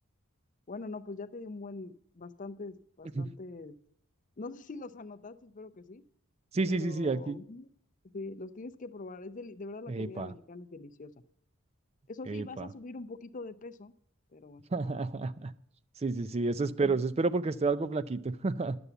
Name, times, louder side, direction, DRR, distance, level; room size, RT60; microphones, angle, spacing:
voice 1, 0.7-3.7 4.4-6.0 6.7-7.7 8.1-11.1 12.1-13.9 14.3-14.6 16.8-16.9, left 3 dB, 35° left, 11 dB, 0.5 m, -43 dB
voice 2, 6.5-7.4 9.9-10.3 12.3-12.7 14.7-15.5 16.0-18.8, right 3 dB, 30° right, 14 dB, 0.4 m, -30 dB
11.0 x 7.0 x 8.0 m, 0.66 s
head